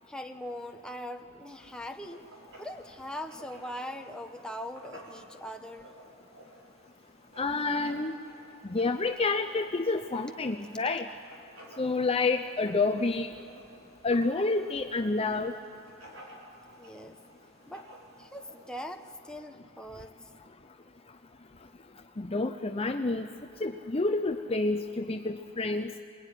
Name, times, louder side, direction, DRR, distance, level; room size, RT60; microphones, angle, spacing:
voice 1, 0.1-2.3 2.6-5.9 16.8-17.2 17.7-17.9 18.2-20.1, equal, 5° left, 4 dB, 1.1 m, -41 dB
Writing, 1.5-19.1, right 1 dB, 65° right, 5.3 m, -53 dB
voice 2, 7.4-8.2 8.6-11.1 11.8-13.3 14.0-15.5 22.2-23.3 23.6-25.9, left 3 dB, 25° left, 6 dB, 0.6 m, -29 dB
27.0 x 20.5 x 10.0 m, 2.3 s
head